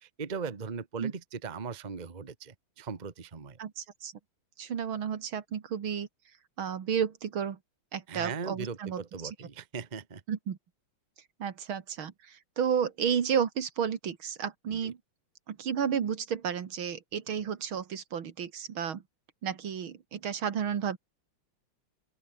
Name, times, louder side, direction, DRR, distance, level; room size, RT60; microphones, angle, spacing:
voice 1, 0.0-3.6 8.1-10.2 14.7-14.9, right 5 dB, 25° right, 1.2 m, -39 dB
voice 2, 3.6-4.1 4.6-6.1 6.6-7.6 7.9-9.3 10.3-10.6 11.4-15.0 15.5-19.0 19.4-21.0, right 8 dB, 70° right, 2.5 m, -32 dB
open air
omnidirectional pair, 2.4 m